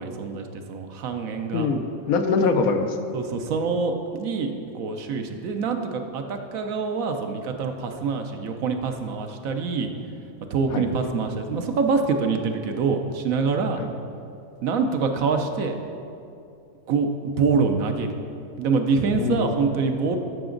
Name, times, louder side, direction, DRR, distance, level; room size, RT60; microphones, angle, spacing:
voice 1, 0.0-1.7 3.1-9.9 10.5-13.8 14.6-15.8 16.9-17.1 17.4-18.1 18.6-20.2, right 5 dB, 75° right, 5 dB, 1.1 m, -25 dB
voice 2, 1.5-3.0 10.7-10.9 13.8-13.9 19.1-19.6, left 4 dB, 85° left, 6 dB, 1.2 m, -23 dB
13.0 x 5.9 x 3.8 m, 2.6 s
omnidirectional pair, 1.5 m